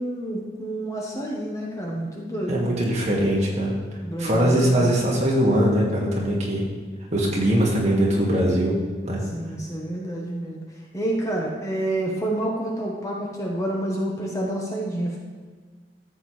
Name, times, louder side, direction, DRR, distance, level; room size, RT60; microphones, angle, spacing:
voice 1, 0.0-2.6 4.0-4.9 9.3-10.6 10.9-15.2, right 1 dB, 20° left, -2 dB, 1.2 m, -28 dB
voice 2, 2.5-3.7 4.2-6.6 7.1-8.7 9.0-9.2, equal, 40° right, -4 dB, 2.1 m, -21 dB
14.0 x 7.6 x 3.3 m, 1.5 s
head